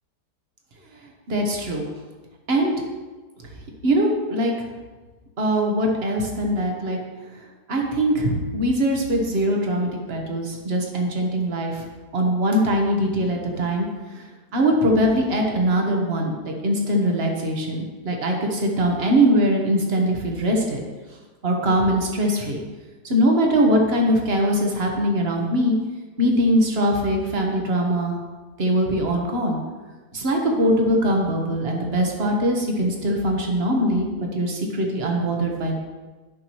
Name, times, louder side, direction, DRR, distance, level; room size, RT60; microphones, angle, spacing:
voice 1, 1.3-1.8 2.5-2.7 3.8-4.5 5.4-7.0 7.7-11.8 12.1-13.9 14.1-14.2 14.5-20.8 21.4-22.6 23.0-25.8 26.2-28.1 28.6-29.6 30.1-35.8, equal, 40° right, 0 dB, 1.2 m, -22 dB
10.0 x 5.9 x 3.0 m, 1.3 s
omnidirectional pair, 1.8 m